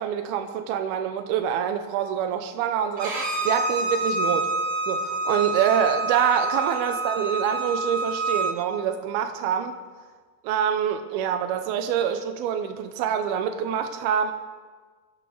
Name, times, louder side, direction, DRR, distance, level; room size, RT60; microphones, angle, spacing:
voice 1, 0.0-4.5 4.9-9.7 10.4-14.3, right 8 dB, 80° right, 6 dB, 2.7 m, -26 dB
Bowed string instrument, 3.0-8.5, right 2 dB, 35° right, 3.3 m, -27 dB
24.5 x 17.0 x 3.4 m, 1.5 s
omnidirectional pair, 4.4 m